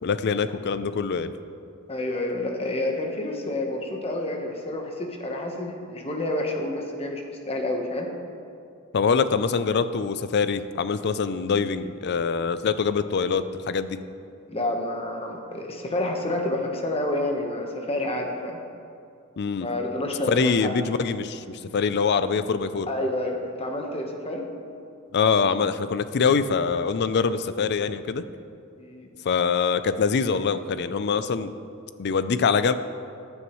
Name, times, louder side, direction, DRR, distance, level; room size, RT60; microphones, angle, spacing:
voice 1, 0.0-1.4 8.9-14.0 19.4-19.7 20.3-22.9 25.1-28.2 29.2-31.5 32.0-32.7, left 5 dB, 55° left, 12 dB, 0.4 m, -24 dB
voice 2, 1.9-8.1 14.5-18.6 19.6-20.7 22.9-24.4 28.8-29.1, left 1 dB, 30° left, 2 dB, 1.2 m, -29 dB
14.5 x 9.7 x 3.1 m, 2.5 s
head